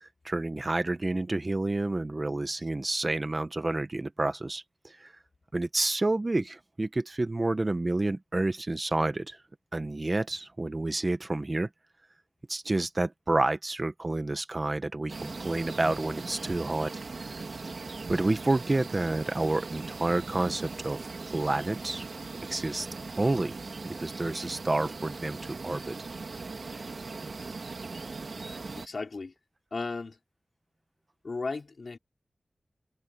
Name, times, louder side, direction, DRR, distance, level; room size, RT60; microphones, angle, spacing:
voice 1, 0.0-5.1 5.5-9.4 9.7-11.7 12.5-16.9 17.3-17.4 18.1-22.1 22.5-22.9 23.2-23.6 23.8-26.0, right 2 dB, 40° right, 1.5 m, -29 dB
sound 1, 15.1-28.9, right 3 dB, 70° right, 2.2 m, -39 dB
voice 2, 28.4-29.3 29.7-30.2 31.2-32.0, left 3 dB, 70° left, 4.9 m, -36 dB
cardioid pair, 45°, 0 cm